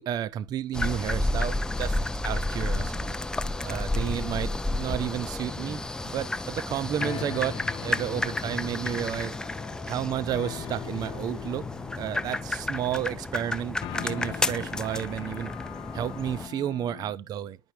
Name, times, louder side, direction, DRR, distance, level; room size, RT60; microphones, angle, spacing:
voice 1, 0.0-3.1 3.6-4.5 4.8-9.4 9.8-11.6 12.0-15.5 15.9-17.6, right 10 dB, 35° right, 0.6 m, -32 dB
sound 1, 0.7-16.5, left 2 dB, 5° left, 0.5 m, -31 dB
sound 2, 7.0-17.1, left 11 dB, 45° left, 1.0 m, -41 dB
10.5 x 5.6 x 3.2 m
cardioid pair, 140°, 11 cm